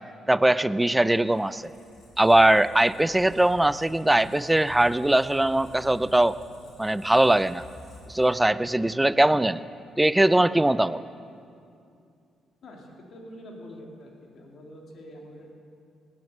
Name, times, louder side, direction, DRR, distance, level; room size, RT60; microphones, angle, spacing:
voice 1, 0.3-1.7 2.2-6.4 6.8-7.6 8.1-9.6 10.0-11.0, right 1 dB, 10° right, 16 dB, 0.4 m, -21 dB
Squeak, 1.1-8.8, equal, 75° left, 4.2 m, -49 dB
voice 2, 12.6-15.5, equal, 60° left, 0 dB, 2.6 m, -45 dB
18.5 x 7.9 x 6.6 m, 2.5 s
cardioid pair, 90°, 0 cm